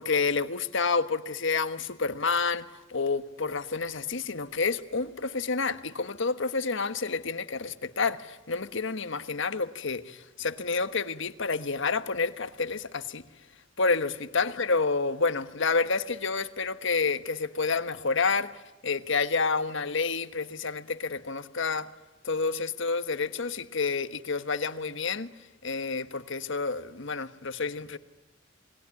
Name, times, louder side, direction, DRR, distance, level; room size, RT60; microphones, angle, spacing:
voice 1, 0.0-13.2 13.8-18.5 18.8-21.9 22.2-25.3 25.6-28.0, left 4 dB, 65° left, 1.4 m, -29 dB
29.0 x 21.5 x 9.6 m
head